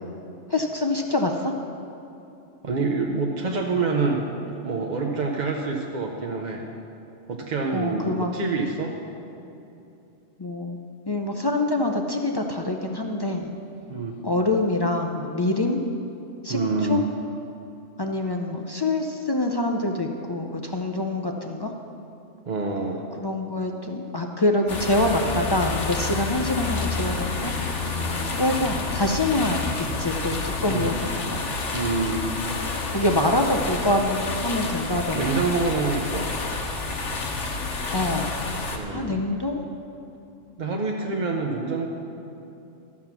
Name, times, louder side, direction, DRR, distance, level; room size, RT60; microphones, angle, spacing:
voice 1, 0.5-1.5 7.7-8.3 10.4-10.8 11.1-13.5 14.2-15.8 16.4-17.0 18.0-21.7 23.2-27.5 28.4-31.4 32.9-35.5 37.9-38.3 38.9-39.6, left 2 dB, 40° left, 2 dB, 0.3 m, -25 dB
voice 2, 2.6-4.2 4.6-6.6 7.3-8.9 13.9-14.2 16.5-17.0 22.5-23.0 30.7-30.9 31.7-32.2 35.2-36.3 38.7-39.2 40.6-41.9, right 3 dB, 45° right, 0 dB, 0.7 m, -26 dB
sound 1, 24.7-38.8, left 3 dB, 70° left, 1.3 m, -29 dB
12.5 x 7.2 x 5.9 m, 2.8 s
omnidirectional pair, 1.3 m